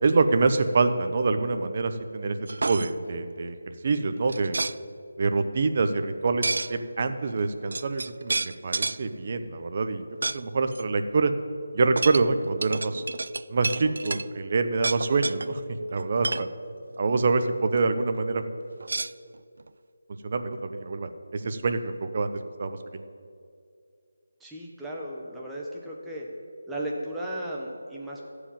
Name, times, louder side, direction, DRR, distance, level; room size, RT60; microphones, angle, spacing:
voice 1, 0.0-4.6 5.2-10.0 10.3-11.3 11.7-13.0 13.5-15.6 15.9-16.5 17.0-18.4 20.2-22.3 22.6-23.0, right 3 dB, 40° right, 8 dB, 0.8 m, -26 dB
sound 1, 2.5-2.9 4.3-4.8 6.4-6.7 7.4-7.5 7.7-9.0 10.2-10.4 10.7-10.8 12.0-14.3 14.8-15.5 16.0-16.5 18.8-19.7, right 3 dB, 65° right, 0.3 m, -30 dB
voice 2, 24.4-26.3 26.7-28.3, right 1 dB, 5° right, -4 dB, 1.1 m, -35 dB
14.5 x 4.9 x 8.9 m, 2.4 s
figure-of-eight pair, 165°, 0 cm